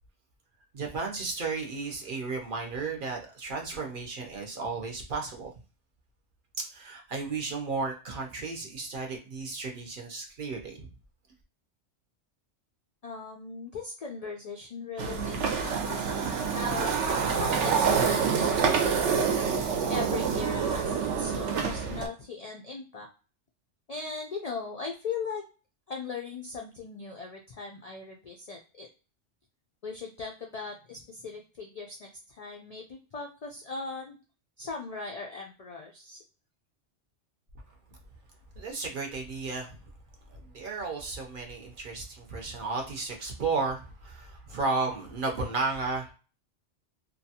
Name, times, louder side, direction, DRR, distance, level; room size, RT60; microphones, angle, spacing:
voice 1, 0.7-5.5 6.6-10.9 38.5-39.8 40.3-46.1, right 3 dB, 55° right, 1 dB, 0.7 m, -33 dB
voice 2, 13.0-16.9 17.3-19.2 19.9-23.1 23.9-25.4 25.9-28.9 29.8-34.2 34.6-36.2, left 4 dB, 75° left, 1 dB, 0.3 m, -39 dB
sound 1, 15.0-22.1, right 6 dB, 80° right, 0.9 m, -27 dB
2.6 x 2.2 x 2.7 m, 0.34 s
omnidirectional pair, 1.2 m